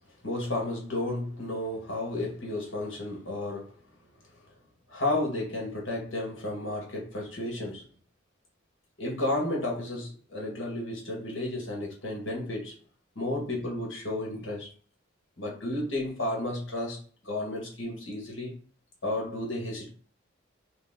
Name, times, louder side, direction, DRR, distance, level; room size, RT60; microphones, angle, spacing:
voice 1, 0.2-3.7 4.9-7.8 9.0-12.7 13.2-14.7 15.4-17.0 17.2-18.5 19.0-19.9, left 1 dB, 70° left, 1.8 m, -32 dB
4.2 x 3.4 x 3.7 m
head